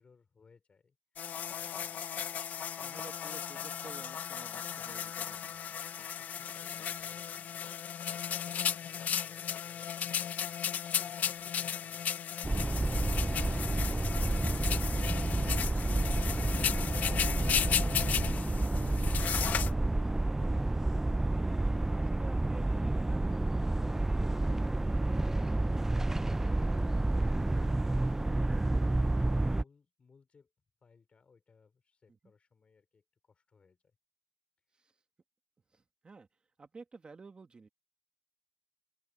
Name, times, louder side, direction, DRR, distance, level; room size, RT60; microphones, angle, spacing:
voice 1, 0.0-1.5 1.8-2.3 5.3-7.7 8.4-12.5 21.8-22.9 30.8-34.0 34.7-34.9, left 5 dB, 50° left, 3.7 m, -65 dB
sound 1, 1.2-19.7, left 9 dB, 85° left, 0.4 m, -35 dB
voice 2, 2.8-5.5 21.6-24.5 34.7-35.0 35.7-36.3 36.6-37.7, right 4 dB, 40° right, 1.5 m, -52 dB
sound 2, 12.4-29.6, right 2 dB, 15° right, 0.3 m, -30 dB
open air
cardioid pair, 95°, 3 cm